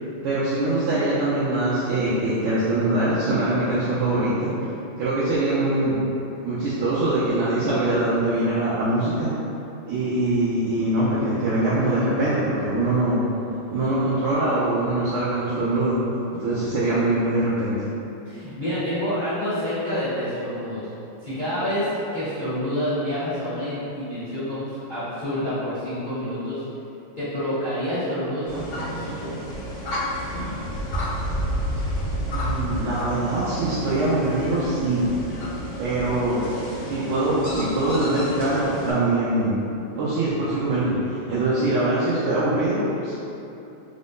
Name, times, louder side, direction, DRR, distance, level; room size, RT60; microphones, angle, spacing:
voice 1, 0.2-4.5 5.0-6.0 6.4-9.3 9.9-13.2 13.7-15.9 16.4-17.7 32.3-35.0 35.8-36.4 36.8-39.6 40.0-43.1, right 2 dB, 85° right, -11 dB, 1.6 m, -23 dB
voice 2, 18.2-20.9 21.2-26.6 27.2-29.3, equal, 25° left, -15 dB, 1.4 m, -28 dB
sound 1, 28.5-38.9, equal, 75° left, 0.5 m, -30 dB
4.5 x 3.6 x 2.6 m, 2.9 s
omnidirectional pair, 2.4 m